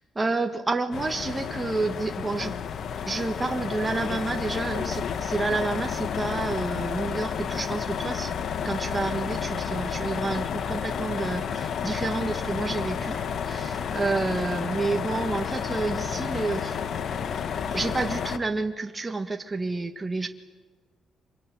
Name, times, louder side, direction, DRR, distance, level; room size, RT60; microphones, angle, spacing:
voice 1, 0.0-2.6 3.1-8.3 8.7-16.8 17.7-20.3, right 3 dB, 20° right, 5 dB, 1.6 m, -29 dB
sound 1, 0.9-18.4, left 7 dB, 60° left, 1.3 m, -31 dB
25.0 x 22.5 x 9.4 m, 1.4 s
cardioid pair, 90°, 0 cm